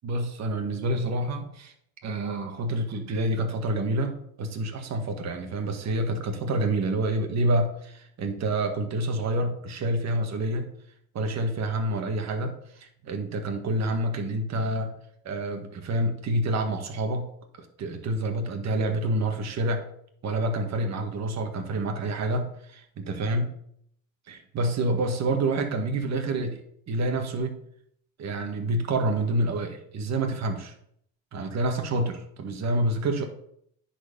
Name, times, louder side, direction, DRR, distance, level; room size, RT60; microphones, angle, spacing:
voice 1, 0.0-1.7 2.0-10.7 11.1-14.9 15.3-17.3 17.8-19.8 20.2-23.5 24.3-26.6 26.9-27.6 28.2-30.7 31.3-33.2, right 1 dB, 40° right, 5 dB, 1.8 m, -28 dB
10.0 x 4.6 x 5.4 m, 0.69 s
supercardioid pair, 100°, 41 cm